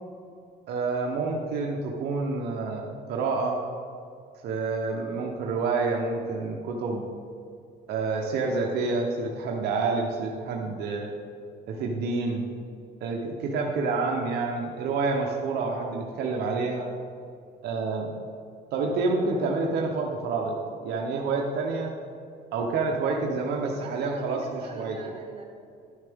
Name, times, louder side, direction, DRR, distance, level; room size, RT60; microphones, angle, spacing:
voice 1, 0.7-3.6 4.4-7.1 7.9-11.1 11.7-12.4 13.0-16.9 17.6-18.1 18.7-20.6 20.8-21.9 22.5-25.0, right 3 dB, 75° right, 1 dB, 0.9 m, -28 dB
voice 2, 23.6-25.4, right 3 dB, 35° right, -1 dB, 1.7 m, -44 dB
11.0 x 6.5 x 3.6 m, 2.4 s
cardioid pair, 110°, 17 cm